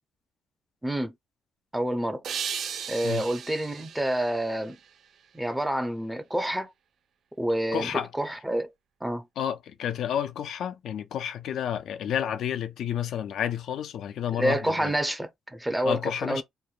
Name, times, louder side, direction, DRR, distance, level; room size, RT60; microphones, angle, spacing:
voice 1, 0.8-1.1 1.7-2.2 2.9-4.8 5.3-6.7 7.4-7.9 8.2-8.7 9.0-9.2 14.4-16.4, right 1 dB, 10° right, 0.5 m, -28 dB
sound 1, 2.2-5.4, right 8 dB, 65° right, 0.4 m, -37 dB
voice 2, 7.7-8.1 9.4-14.9 15.8-16.4, left 9 dB, 75° left, 0.3 m, -30 dB
3.0 x 2.1 x 2.4 m
cardioid pair, 90°, 0 cm